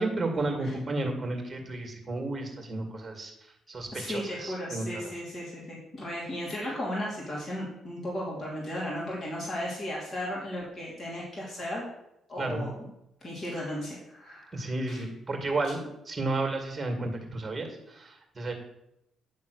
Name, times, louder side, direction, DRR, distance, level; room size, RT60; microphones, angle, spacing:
voice 1, 0.0-3.3 3.7-5.1 12.4-12.7 14.5-18.5, right 2 dB, 25° right, 3 dB, 2.2 m, -32 dB
voice 2, 3.9-11.9 12.3-12.7 13.2-15.0, left 1 dB, 35° left, -5 dB, 2.9 m, -35 dB
9.2 x 3.8 x 6.6 m, 0.83 s
cardioid pair, 90°, 0 cm